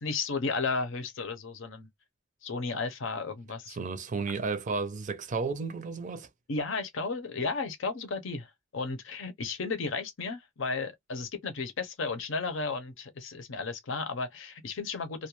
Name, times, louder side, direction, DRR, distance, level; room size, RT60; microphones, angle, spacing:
voice 1, 0.0-1.9 2.4-3.8 6.5-15.3, left 4 dB, 70° left, 0.6 m, -34 dB
voice 2, 3.7-6.3, right 4 dB, 40° right, 0.5 m, -33 dB
2.3 x 2.1 x 2.9 m
head